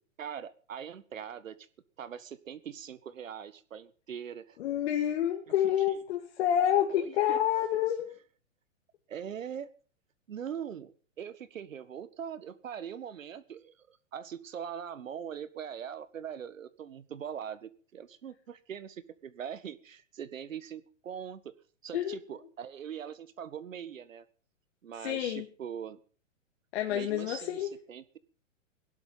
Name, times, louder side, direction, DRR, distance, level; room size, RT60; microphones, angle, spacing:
voice 1, 0.2-1.6 2.0-4.6 5.6-5.7 6.9-7.4 9.1-9.7 10.3-10.9 11.2-21.5 21.8-24.3 24.8-26.0 26.9-28.0, right 8 dB, 75° right, 15 dB, 1.7 m, -42 dB
voice 2, 4.6-8.2 21.9-22.2 25.0-25.5 26.7-27.7, left 10 dB, 50° left, 2 dB, 2.3 m, -28 dB
17.0 x 11.5 x 5.6 m, 0.41 s
hypercardioid pair, 135°, 39 cm